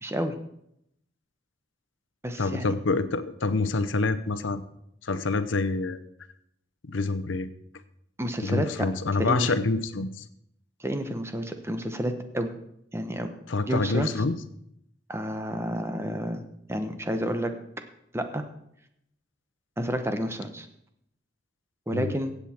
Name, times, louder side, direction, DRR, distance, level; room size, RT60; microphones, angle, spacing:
voice 1, 0.0-0.4 2.2-2.7 8.2-8.7 9.2-9.5 10.8-12.5 12.9-13.3 13.7-14.1 15.1-16.4 16.7-17.5 18.1-18.4 19.8-20.7 21.9-22.3, equal, 15° right, 7 dB, 0.9 m, -30 dB
voice 2, 2.4-4.6 5.0-6.0 6.9-7.5 8.4-10.2 13.5-14.4 21.9-22.1, left 3 dB, 85° left, 11 dB, 0.8 m, -27 dB
15.5 x 8.1 x 4.4 m, 0.76 s
head